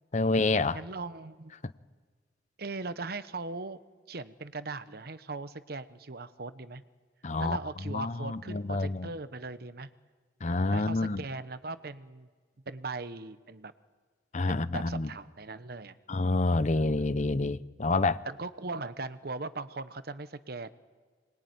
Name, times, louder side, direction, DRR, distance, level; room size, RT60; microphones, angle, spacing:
voice 1, 0.1-0.8 7.2-7.6 7.8-9.1 10.4-11.2 14.3-15.1 16.1-18.2, left 2 dB, 45° left, 0.8 m, -28 dB
voice 2, 0.7-1.6 2.6-3.8 4.1-6.8 7.4-9.9 10.7-12.3 12.7-13.7 14.5-16.0 16.7-17.1 18.2-20.7, right 3 dB, 60° right, 1.1 m, -39 dB
26.0 x 21.5 x 9.5 m
head